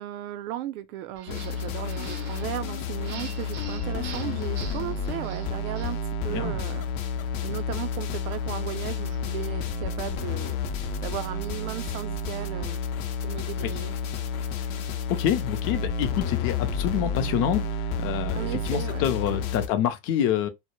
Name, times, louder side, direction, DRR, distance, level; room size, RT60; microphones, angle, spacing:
voice 1, 0.0-10.6 11.0-12.9 13.2-14.0 18.3-19.1, right 13 dB, 80° right, 0.5 m, -36 dB
sound 1, 1.2-6.0, right 6 dB, 25° right, 0.4 m, -45 dB
sound 2, 1.3-19.7, left 4 dB, 85° left, 0.6 m, -30 dB
voice 2, 14.5-14.8 15.1-20.5, left 10 dB, 35° left, 0.4 m, -27 dB
2.1 x 2.0 x 2.9 m
supercardioid pair, 135°, 41 cm